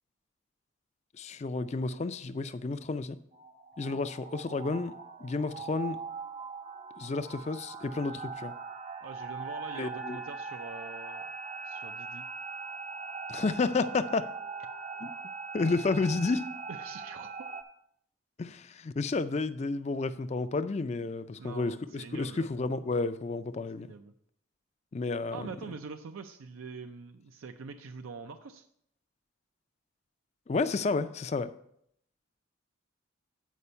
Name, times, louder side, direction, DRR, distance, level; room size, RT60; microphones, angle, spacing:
voice 1, 1.1-3.2 3.8-4.9 5.2-6.0 7.0-8.5 9.7-10.2 13.3-14.3 15.0-15.1 15.5-16.5 18.4-23.9 24.9-25.5 30.5-31.5, left 3 dB, 30° left, 0.3 m, -31 dB
sound 1, 3.3-17.6, right 4 dB, 30° right, 0.5 m, -41 dB
voice 2, 9.0-11.2 11.6-12.3 16.7-17.5 21.4-22.5 23.8-24.1 25.3-28.7, right 4 dB, 80° right, 0.5 m, -44 dB
8.3 x 5.1 x 5.5 m
head